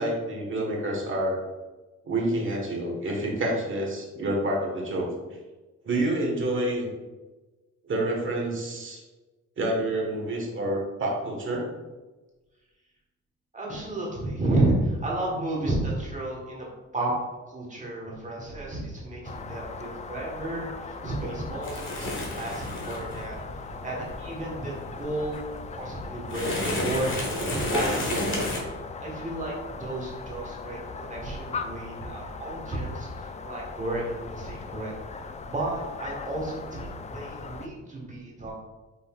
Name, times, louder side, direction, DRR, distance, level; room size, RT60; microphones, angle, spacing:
voice 1, 0.0-1.4 2.0-5.1 5.8-6.9 7.8-9.0 9.6-11.7, right 1 dB, 40° right, -1 dB, 1.4 m, -28 dB
voice 2, 13.5-16.7 16.9-17.1 17.5-23.4 23.8-25.4 25.7-28.3 28.6-34.9 35.5-38.5, right 2 dB, 25° right, -3 dB, 1.4 m, -32 dB
sound 1, 19.2-37.7, left 4 dB, 25° left, 0.3 m, -39 dB
sound 2, 21.6-28.6, left 1 dB, 40° left, 1.4 m, -32 dB
5.5 x 4.0 x 2.4 m, 1.2 s
cardioid pair, 90°, 30 cm